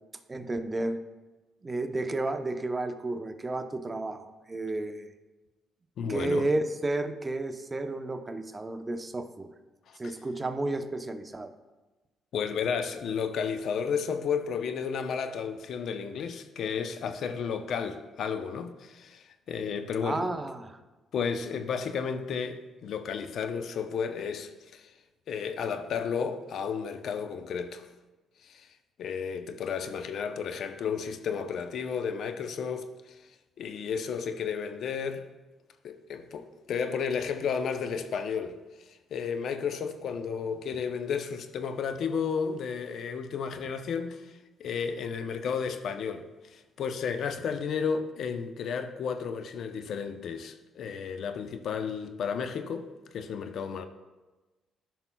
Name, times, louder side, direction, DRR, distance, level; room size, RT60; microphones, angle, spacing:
voice 1, 0.3-1.0 1.6-5.1 6.1-9.5 10.0-11.5 20.0-20.8, right 2 dB, 25° right, 0.7 m, -32 dB
voice 2, 6.0-6.5 9.9-10.2 12.3-20.3 21.1-24.9 25.3-27.9 28.4-28.7 29.0-33.2 33.6-35.2 35.8-38.6 39.1-52.9 53.1-53.9, left 6 dB, 65° left, 0.6 m, -33 dB
13.5 x 5.9 x 2.3 m
supercardioid pair, 75°, 0 cm